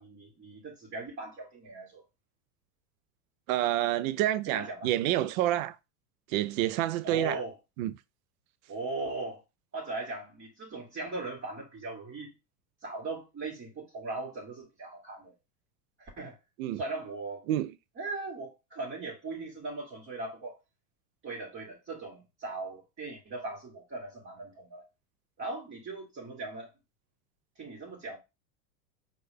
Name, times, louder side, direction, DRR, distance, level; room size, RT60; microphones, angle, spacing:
voice 1, 0.0-2.0 4.5-4.9 7.0-7.5 8.7-9.4 9.7-12.3 12.8-15.3 16.0-16.4 16.8-17.4 18.0-20.6 21.2-24.8 25.4-26.7 27.6-28.2, right 3 dB, 25° right, 1.7 m, -39 dB
voice 2, 3.5-5.8 6.3-7.4 7.8-7.9 16.6-16.8 17.5-17.7, right 13 dB, 60° right, 0.6 m, -28 dB
4.6 x 2.5 x 3.4 m
hypercardioid pair, 100°, 46 cm